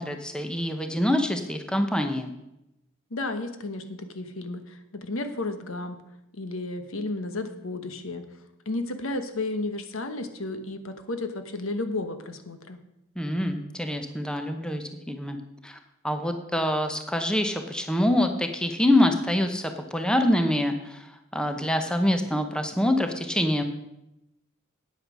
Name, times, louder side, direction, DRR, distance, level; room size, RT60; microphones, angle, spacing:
voice 1, 0.0-2.3 13.2-15.4 15.6-15.8 16.0-23.6, left 1 dB, 5° left, 6 dB, 0.9 m, -25 dB
voice 2, 3.1-6.0 6.3-8.2 8.7-12.8, left 2 dB, 80° left, 8 dB, 1.1 m, -33 dB
9.1 x 8.5 x 6.2 m, 0.88 s
head